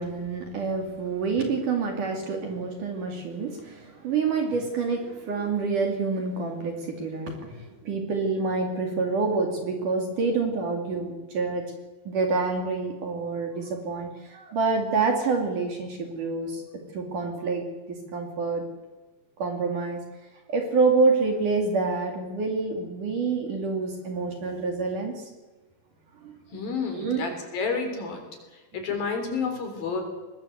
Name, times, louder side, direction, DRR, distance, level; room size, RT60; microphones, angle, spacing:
voice 1, 0.0-11.7 12.1-16.6 16.9-18.6 19.4-20.0 20.5-25.3 26.2-26.3 26.9-27.2 28.7-28.8, right 4 dB, 50° right, 4 dB, 3.6 m, -27 dB
voice 2, 26.5-28.2 28.7-30.0, left 5 dB, 50° left, 5 dB, 5.3 m, -30 dB
22.5 x 20.0 x 8.0 m, 1.2 s
omnidirectional pair, 5.3 m